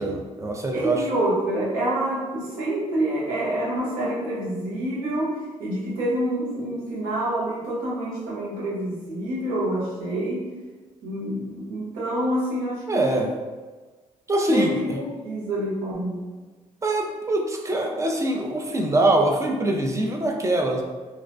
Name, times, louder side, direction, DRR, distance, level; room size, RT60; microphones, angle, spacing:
voice 1, 0.0-1.0 12.9-13.3 14.3-14.8 16.8-20.8, right 1 dB, 20° right, 2 dB, 0.4 m, -23 dB
voice 2, 0.7-10.5 11.0-13.2 14.5-16.3, right 1 dB, 85° right, -7 dB, 0.8 m, -27 dB
2.5 x 2.0 x 2.4 m, 1.3 s
supercardioid pair, 60°, 14 cm